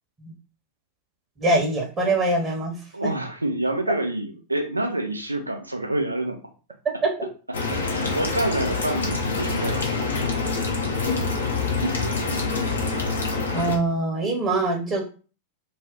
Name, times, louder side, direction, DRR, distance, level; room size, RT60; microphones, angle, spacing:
voice 1, 1.4-2.7 7.0-7.1 13.5-15.0, right 2 dB, 25° right, -1 dB, 0.9 m, -23 dB
voice 2, 2.9-6.4 7.9-9.8 11.8-12.4, right 1 dB, 85° right, 4 dB, 0.5 m, -27 dB
sound 1, 7.5-13.8, left 3 dB, 70° left, 0.7 m, -26 dB
2.5 x 2.2 x 3.6 m, 0.36 s
figure-of-eight pair, 90°, 0 cm